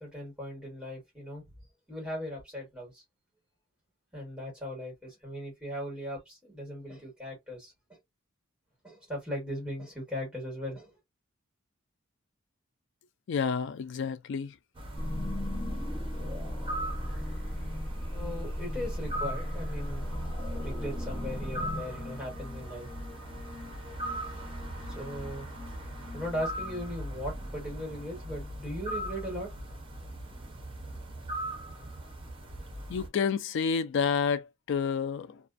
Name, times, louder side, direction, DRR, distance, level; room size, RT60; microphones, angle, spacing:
voice 1, 0.0-1.4 1.9-3.0 4.1-8.0 8.8-10.9 18.1-20.0 20.6-22.9 24.3-24.6 24.9-25.5 26.1-29.5, equal, 5° right, 1.4 m, -38 dB
voice 2, 13.3-14.5 32.9-35.4, left 6 dB, 60° left, 0.3 m, -29 dB
sound 1, 14.8-33.1, right 1 dB, 25° right, 0.7 m, -40 dB
sound 2, 15.0-26.9, left 1 dB, 15° left, 0.7 m, -37 dB
2.4 x 2.3 x 2.4 m
head